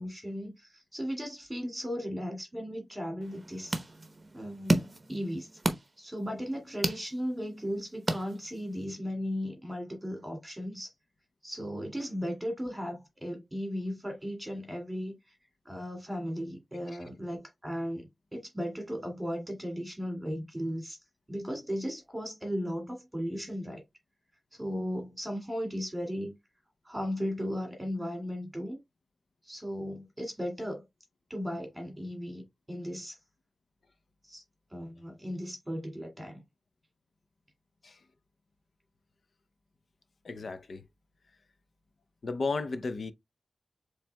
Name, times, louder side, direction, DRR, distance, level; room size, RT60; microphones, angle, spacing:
voice 1, 0.0-3.8 4.3-5.5 6.0-10.9 11.4-15.4 15.7-21.0 21.3-23.8 24.5-26.3 26.9-28.8 29.4-30.8 31.3-33.2 34.3-34.4 34.7-36.4, equal, 15° right, 2.2 m, -36 dB
sound 1, 3.2-8.9, right 1 dB, 30° right, 0.9 m, -34 dB
voice 2, 40.2-40.8 42.2-43.1, left 3 dB, 60° left, 0.6 m, -33 dB
7.1 x 3.2 x 2.2 m
wide cardioid pair, 130°, 0 cm